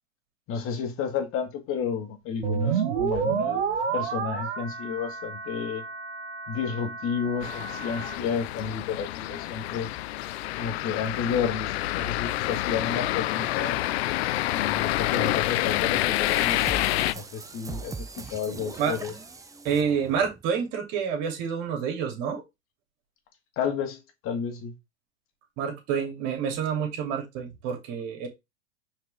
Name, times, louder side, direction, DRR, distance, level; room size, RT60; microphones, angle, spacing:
voice 1, 0.5-5.8 6.5-9.9 10.6-13.8 14.5-19.1 23.6-24.7, left 6 dB, 40° left, 2.0 m, -31 dB
sound 1, 2.4-8.1, right 6 dB, 80° right, 1.6 m, -30 dB
sound 2, 7.4-17.1, left 16 dB, 65° left, 0.5 m, -28 dB
sound 3, 16.3-20.4, right 4 dB, 10° right, 0.8 m, -40 dB
voice 2, 19.6-22.4 25.6-28.3, right 7 dB, 50° right, 2.8 m, -28 dB
6.0 x 4.7 x 3.4 m
hypercardioid pair, 105°, 35 cm